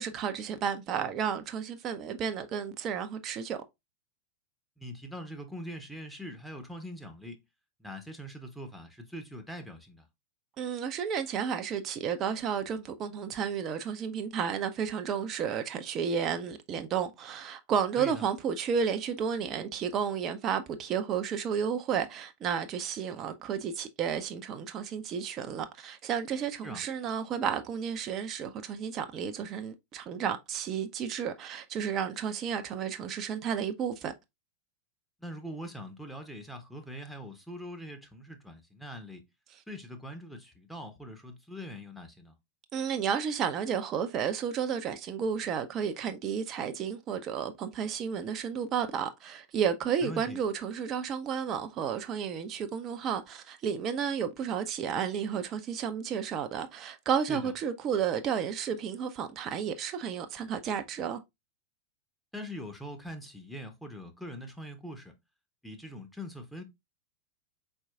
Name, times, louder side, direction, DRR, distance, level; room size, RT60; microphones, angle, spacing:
voice 1, 0.0-3.6 10.6-34.1 42.7-61.2, right 7 dB, 30° right, 0.5 m, -32 dB
voice 2, 4.8-7.4 7.8-10.1 18.0-18.2 26.6-26.8 35.2-39.2 39.7-42.4 50.0-50.4 57.3-57.5 62.3-65.1 65.6-66.6, equal, ahead, 0.8 m, -42 dB
4.6 x 4.3 x 2.3 m
figure-of-eight pair, 90°, 0 cm